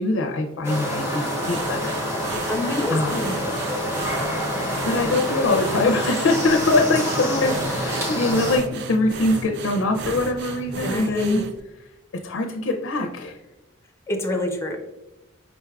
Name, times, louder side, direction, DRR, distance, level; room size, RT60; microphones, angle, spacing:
voice 1, 0.0-2.0 2.9-3.3 4.8-11.4 12.2-13.4, left 2 dB, 75° left, 3 dB, 0.4 m, -23 dB
sound 1, 0.6-8.6, equal, 15° right, 0.9 m, -27 dB
sound 2, 1.3-11.4, equal, 70° right, 0.8 m, -38 dB
sound 3, 1.4-11.6, right 5 dB, 55° right, 0.3 m, -36 dB
voice 2, 2.5-3.5 7.2-7.5 10.8-11.4 14.1-14.8, left 1 dB, 15° left, 3 dB, 0.5 m, -27 dB
5.2 x 3.3 x 2.3 m, 0.99 s
head